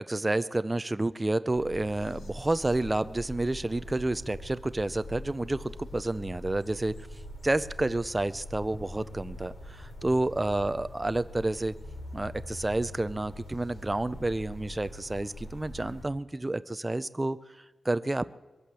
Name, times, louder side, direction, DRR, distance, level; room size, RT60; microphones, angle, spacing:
voice 1, 0.0-6.9 7.4-11.8 12.1-18.3, right 2 dB, 15° right, 13 dB, 0.4 m, -30 dB
sound 1, 1.5-16.1, left 1 dB, 75° left, 2.8 m, -43 dB
22.0 x 8.5 x 7.5 m, 1.2 s
wide cardioid pair, 150°, 0 cm